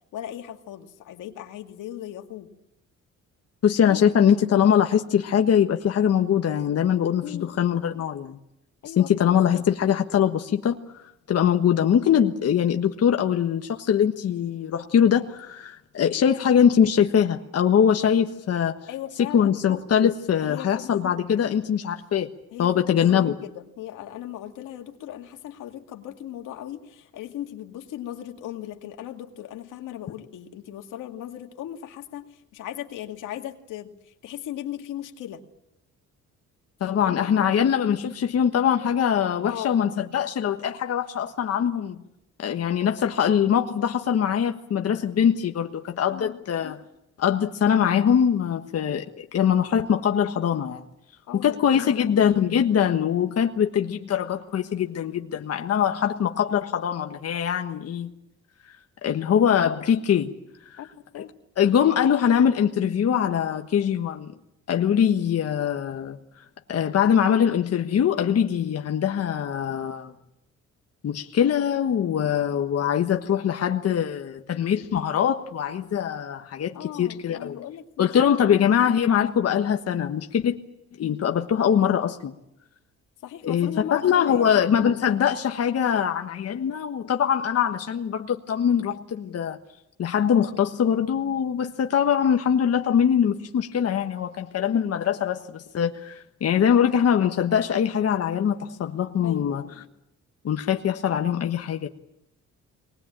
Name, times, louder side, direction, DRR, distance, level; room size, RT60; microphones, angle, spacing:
voice 1, 0.1-2.5 3.9-4.0 7.2-7.5 8.8-9.4 18.9-19.6 20.4-21.0 22.5-35.4 36.8-37.5 39.4-39.8 46.1-46.4 51.3-52.0 60.8-61.3 76.7-78.5 83.2-84.6 99.2-99.9, left 12 dB, 85° left, 2.3 m, -38 dB
voice 2, 3.6-8.4 9.0-18.9 19.2-22.3 22.6-23.3 36.8-42.0 42.4-46.8 47.2-50.8 51.3-58.1 59.0-60.3 60.7-60.8 61.6-64.4 64.7-66.2 66.7-70.1 71.0-77.6 78.0-80.6 81.0-82.3 83.4-89.6 90.0-99.7 100.4-101.9, left 8 dB, 55° left, 1.4 m, -22 dB
23.0 x 20.0 x 8.8 m
cardioid pair, 90°, 30 cm